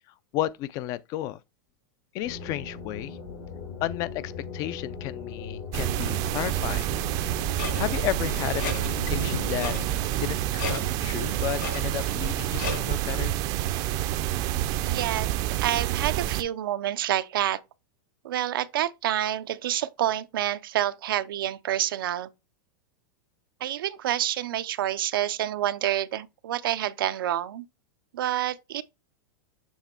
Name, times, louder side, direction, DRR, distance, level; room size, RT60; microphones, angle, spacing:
voice 1, 0.3-1.4 2.1-3.2 3.8-6.9 7.8-9.7 10.2-13.3, left 14 dB, 30° left, 0.4 m, -32 dB
sound 1, 2.2-10.0, left 5 dB, 80° left, 4.1 m, -39 dB
sound 2, 5.7-16.4, right 13 dB, 35° right, 0.5 m, -28 dB
Clock, 7.5-13.1, left 4 dB, 60° left, 2.6 m, -38 dB
voice 2, 14.8-15.3 15.6-17.6 18.2-22.3 23.6-27.6 28.1-28.8, right 12 dB, 85° right, 0.6 m, -28 dB
7.1 x 3.2 x 4.3 m
supercardioid pair, 160°, 11 cm